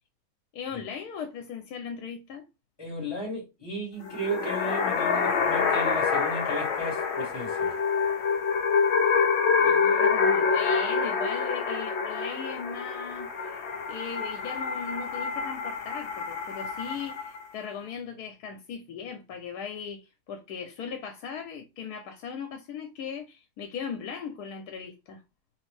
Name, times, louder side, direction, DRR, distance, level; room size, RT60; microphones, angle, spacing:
voice 1, 0.5-2.4 9.6-13.6 13.9-25.2, left 6 dB, 80° left, 1.1 m, -38 dB
voice 2, 2.8-7.7, right 1 dB, 15° left, 1.4 m, -35 dB
sound 1, 4.0-17.4, left 5 dB, 60° left, 0.7 m, -26 dB
3.1 x 2.5 x 3.2 m
omnidirectional pair, 1.7 m